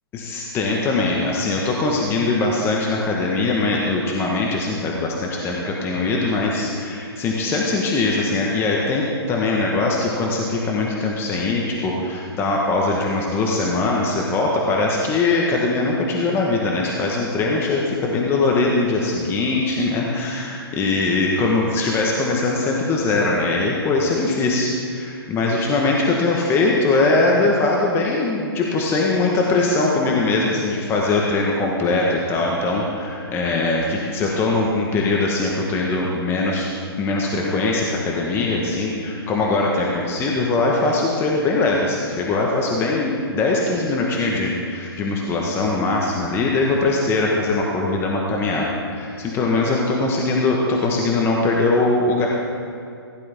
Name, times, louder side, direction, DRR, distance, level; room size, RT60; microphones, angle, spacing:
voice 1, 0.1-36.7 37.0-52.3, left 3 dB, 20° left, -2 dB, 1.2 m, -21 dB
16.0 x 11.5 x 3.5 m, 2.4 s
hypercardioid pair, 140°, 13 cm